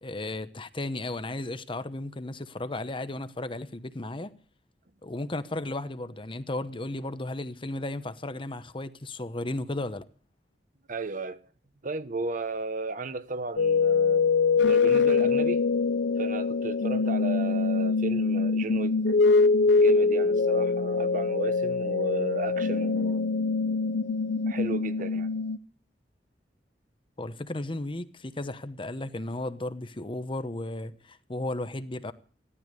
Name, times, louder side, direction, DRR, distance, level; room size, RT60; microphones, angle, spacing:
voice 1, 0.0-4.3 5.0-10.0 27.2-32.1, left 2 dB, 30° left, 1.0 m, -34 dB
voice 2, 10.9-11.4 11.8-14.3 14.6-15.6 16.2-19.2 19.8-23.2 24.5-25.3, right 3 dB, 50° right, 1.1 m, -34 dB
sound 1, 13.6-25.6, left 4 dB, 85° left, 0.7 m, -24 dB
16.5 x 12.5 x 6.8 m
head